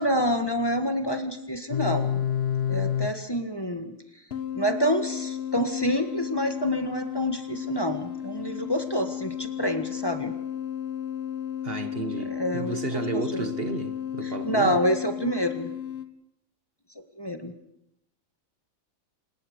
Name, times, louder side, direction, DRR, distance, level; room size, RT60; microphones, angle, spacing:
voice 1, 0.0-2.2 2.7-4.0 4.5-10.3 12.1-13.4 14.2-15.7 17.2-17.5, equal, 15° left, 1.6 m, -27 dB
sound 1, 1.7-3.1 4.3-16.0, left 9 dB, 50° left, 1.6 m, -32 dB
voice 2, 11.6-14.8, right 3 dB, 45° right, 1.4 m, -32 dB
28.0 x 17.5 x 6.7 m
omnidirectional pair, 1.4 m